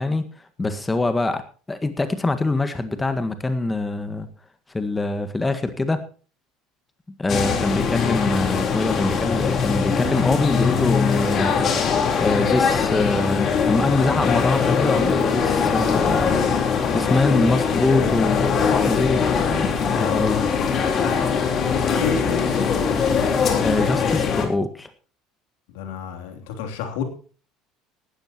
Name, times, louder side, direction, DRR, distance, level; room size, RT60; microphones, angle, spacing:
voice 1, 0.0-1.4 1.7-4.3 4.7-6.0 7.2-19.3 19.8-20.4 23.6-24.9, left 2 dB, 15° left, 9 dB, 1.7 m, -24 dB
sound 1, 7.3-24.5, left 6 dB, 45° left, 4.0 m, -21 dB
voice 2, 19.9-21.2 21.5-22.5 25.7-27.0, left 7 dB, 75° left, 5 dB, 3.1 m, -31 dB
18.0 x 13.5 x 3.1 m, 0.39 s
hypercardioid pair, 70°, 0 cm